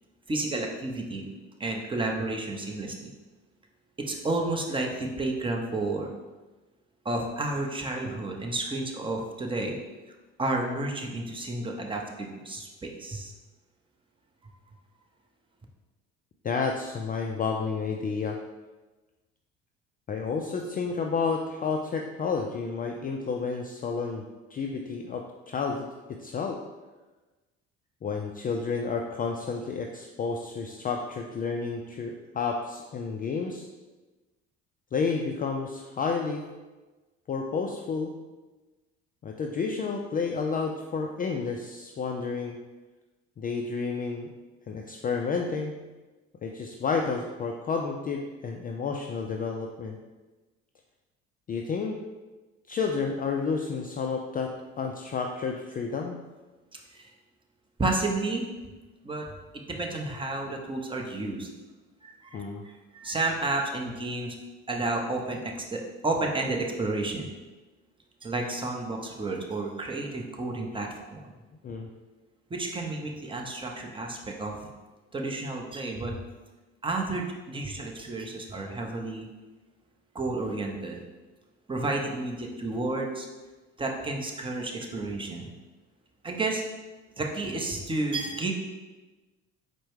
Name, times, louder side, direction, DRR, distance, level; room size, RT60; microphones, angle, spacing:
voice 1, 0.3-1.3 1.6-3.1 4.0-6.1 7.0-9.8 10.4-13.3 56.9-57.1 57.8-58.4 59.0-61.5 62.0-64.4 64.7-67.3 68.2-71.3 72.5-74.7 75.1-76.2 76.8-79.3 80.1-81.0 81.7-83.3 83.8-85.5 86.2-86.6 87.2-88.5, right 2 dB, 15° right, 1 dB, 0.8 m, -31 dB
voice 2, 16.4-18.4 20.1-24.2 24.5-26.6 28.0-33.7 34.9-36.4 37.3-38.1 39.2-42.6 43.4-44.3 44.7-45.8 46.4-50.0 51.5-52.0 52.7-56.2 62.3-62.6 71.6-71.9, left 5 dB, 25° left, 2 dB, 0.4 m, -31 dB
4.5 x 2.2 x 4.6 m, 1.2 s
hypercardioid pair, 70°, 32 cm